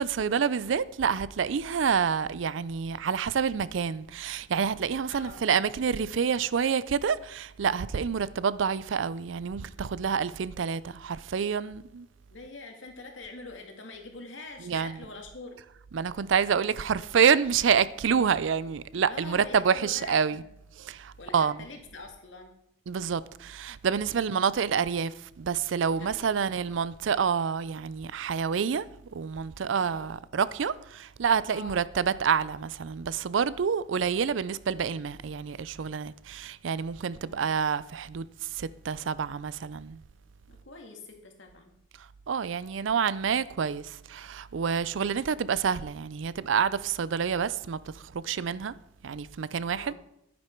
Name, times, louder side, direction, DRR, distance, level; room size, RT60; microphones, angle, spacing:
voice 1, 0.0-12.1 14.6-15.0 15.9-20.4 20.8-21.6 22.9-28.9 29.1-40.0 42.3-48.7 49.0-49.9, right 6 dB, 75° right, 0.4 m, -28 dB
voice 2, 5.1-5.4 12.3-15.6 19.1-20.5 21.2-22.5 26.0-26.2 29.8-30.1 31.5-31.8 37.2-37.5 40.5-41.7 49.7-49.9, left 3 dB, 75° left, 2.1 m, -44 dB
10.5 x 9.5 x 4.5 m
head